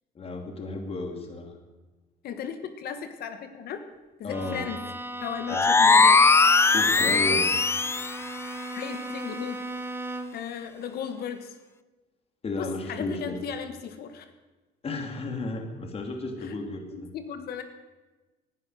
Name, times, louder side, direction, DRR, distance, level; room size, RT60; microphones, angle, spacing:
voice 1, 0.1-1.5 4.2-4.6 5.5-5.7 6.7-7.5 12.4-13.4 14.8-17.1, left 2 dB, 35° left, 4 dB, 2.7 m, -33 dB
voice 2, 2.2-3.8 4.2-4.8 5.2-6.3 7.0-7.4 8.7-9.6 10.3-11.6 12.6-14.3 16.4-16.6 16.9-17.6, left 8 dB, 70° left, 8 dB, 1.6 m, -36 dB
Bowed string instrument, 4.3-10.5, right 2 dB, 15° right, 0.9 m, -38 dB
sound 1, 5.5-8.2, left 4 dB, 15° left, 0.4 m, -19 dB
19.0 x 11.0 x 6.4 m, 1.2 s
cardioid pair, 110°, 17 cm